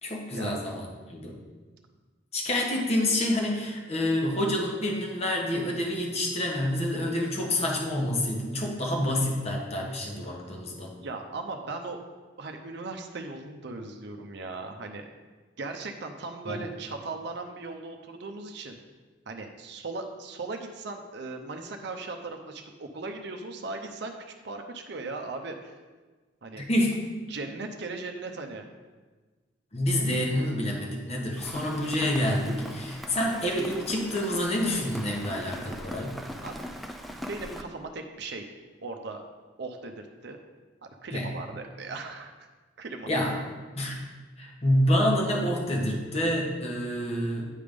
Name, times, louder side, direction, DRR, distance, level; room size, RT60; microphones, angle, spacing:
voice 1, 0.0-1.4 2.3-10.9 16.5-16.6 26.6-27.0 29.7-36.2 41.1-41.3 43.1-43.3 43.7-43.9 44.4-47.5, left 1 dB, 35° left, -1 dB, 1.2 m, -28 dB
voice 2, 11.0-12.0 12.4-15.1 15.6-18.8 19.3-24.1 24.4-25.8 26.4-26.6 27.3-28.7 36.4-36.8 37.2-38.5 38.8-39.2 39.6-39.9 40.2-40.4 41.0-42.5 42.8-43.1, right 3 dB, 60° right, 4 dB, 0.6 m, -38 dB
Rain, 31.4-37.6, equal, ahead, 0.4 m, -40 dB
9.2 x 3.4 x 5.1 m, 1.3 s
head